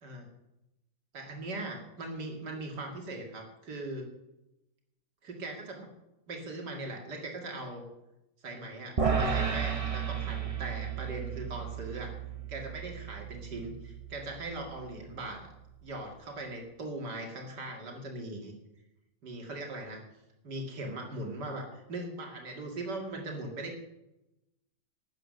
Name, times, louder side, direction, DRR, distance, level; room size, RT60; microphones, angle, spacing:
voice 1, 1.1-4.1 5.2-5.9 6.3-7.8 8.4-12.2 12.5-15.5 15.8-18.5 19.2-20.0 20.4-23.8, right 2 dB, 85° right, 2 dB, 2.9 m, -40 dB
sound 1, 9.0-15.3, right 6 dB, 25° right, 1.0 m, -34 dB
12.5 x 8.9 x 6.4 m, 0.91 s
omnidirectional pair, 1.8 m